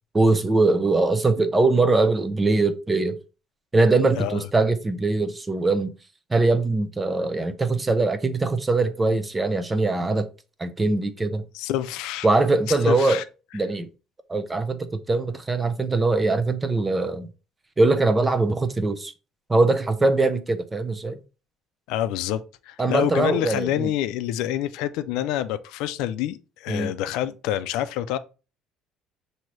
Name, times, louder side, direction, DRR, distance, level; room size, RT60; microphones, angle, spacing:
voice 1, 0.1-3.2 3.7-5.9 6.3-10.3 10.6-11.4 12.2-13.2 13.5-13.9 14.3-17.3 17.8-19.1 19.5-21.2 22.8-23.9 26.7-26.9, right 3 dB, 20° right, 0.6 m, -22 dB
voice 2, 11.5-12.3 12.7-13.2 21.9-28.2, left 12 dB, 85° left, 0.4 m, -27 dB
5.8 x 2.7 x 3.1 m
cardioid pair, 115°, 0 cm